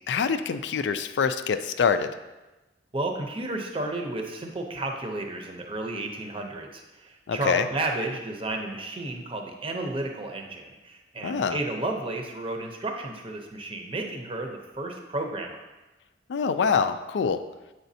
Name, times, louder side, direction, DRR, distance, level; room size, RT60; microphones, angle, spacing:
voice 1, 0.1-2.1 7.3-7.7 11.2-11.6 16.3-17.4, left 6 dB, 75° left, 10 dB, 0.4 m, -25 dB
voice 2, 2.9-15.6, right 2 dB, 30° right, 3 dB, 0.7 m, -32 dB
7.8 x 5.0 x 2.7 m, 1.1 s
head